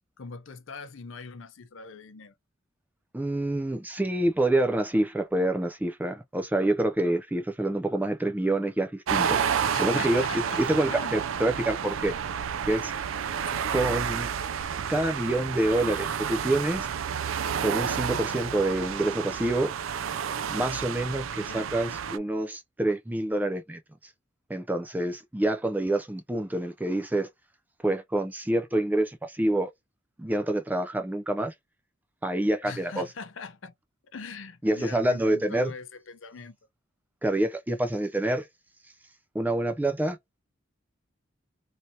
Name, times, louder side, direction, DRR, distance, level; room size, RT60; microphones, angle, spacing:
voice 1, 0.2-2.3 9.7-11.3 13.5-13.7 21.4-21.7 32.6-33.7 34.1-36.6, left 4 dB, 70° left, 0.6 m, -41 dB
voice 2, 3.1-9.4 9.8-10.2 10.6-12.2 12.7-12.9 13.7-14.3 14.9-16.9 17.6-19.7 20.5-23.8 24.5-27.3 27.8-29.7 30.2-31.5 32.2-33.1 34.6-35.7 37.2-38.5 39.3-40.2, right 1 dB, 10° right, 0.3 m, -27 dB
sound 1, 9.1-22.2, right 7 dB, 80° right, 0.4 m, -30 dB
3.2 x 2.7 x 2.6 m
head